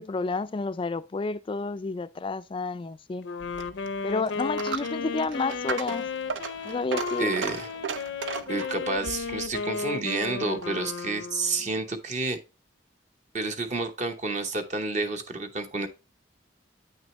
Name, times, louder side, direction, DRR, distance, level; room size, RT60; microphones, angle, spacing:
voice 1, 0.0-3.3 4.0-6.1 6.6-7.3, left 3 dB, 30° left, 0.3 m, -30 dB
Wind instrument woodwind instrument, 3.2-11.9, left 5 dB, 80° left, 0.6 m, -34 dB
Coin (dropping), 3.4-10.9, right 5 dB, 90° right, 0.7 m, -37 dB
voice 2, 7.2-7.7 8.5-12.4 13.3-15.9, right 3 dB, 40° right, 0.8 m, -30 dB
8.5 x 6.2 x 3.1 m
head